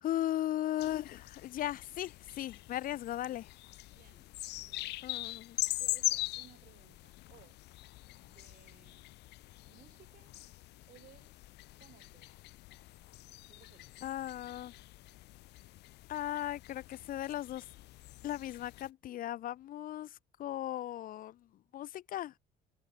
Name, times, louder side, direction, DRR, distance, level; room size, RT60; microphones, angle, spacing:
voice 1, 0.0-3.5 5.0-5.6 14.0-14.7 16.1-17.7 18.2-21.4 21.7-22.3, left 13 dB, 55° left, 0.6 m, -37 dB
sound 1, 0.8-18.9, left 18 dB, 80° left, 2.4 m, -42 dB
voice 2, 3.9-4.3 4.6-5.0 5.8-7.6 8.2-9.0 9.6-10.4 10.9-11.3 11.8-12.4 13.5-13.9, right 11 dB, 60° right, 7.5 m, -61 dB
cardioid pair, 110°, 17 cm